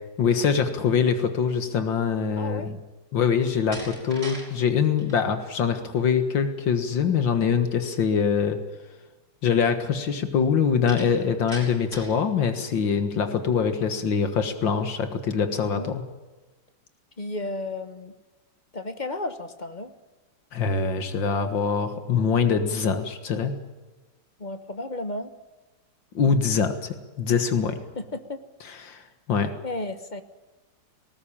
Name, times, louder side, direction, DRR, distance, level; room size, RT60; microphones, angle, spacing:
voice 1, 0.2-2.8 3.1-8.6 9.4-16.0 20.5-23.6 26.1-27.8 28.7-29.5, left 6 dB, 80° left, 8 dB, 2.3 m, -24 dB
voice 2, 2.4-2.7 15.7-16.0 17.2-18.1 18.7-19.9 24.4-25.3 28.0-28.4 29.6-30.2, left 2 dB, 30° left, 9 dB, 1.2 m, -33 dB
Slam, 3.4-4.5 4.8-5.2 10.9-12.2, right 1 dB, 40° right, 7.0 m, -40 dB
19.0 x 19.0 x 8.7 m, 1.2 s
omnidirectional pair, 2.0 m